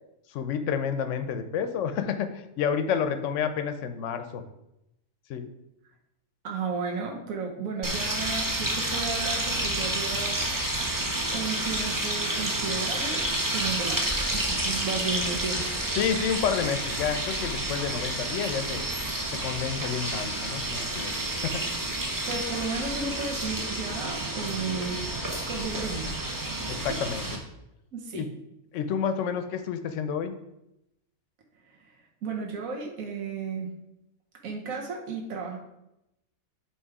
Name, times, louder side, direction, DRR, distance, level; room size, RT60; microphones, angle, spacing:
voice 1, 0.3-4.4 5.3-5.5 15.9-18.8 19.3-21.6 26.7-27.3 28.1-28.3 28.7-30.3, left 7 dB, 65° left, 10 dB, 0.9 m, -29 dB
voice 2, 6.4-10.6 11.3-13.2 13.5-15.6 22.3-25.0 25.5-26.1 26.8-26.9 27.9-28.2 31.8-31.9 32.2-33.7 34.4-35.6, right 4 dB, 75° right, 0 dB, 1.3 m, -33 dB
sound 1, 7.8-27.4, right 1 dB, 15° right, 0.8 m, -30 dB
8.1 x 3.2 x 4.7 m, 0.87 s
omnidirectional pair, 1.4 m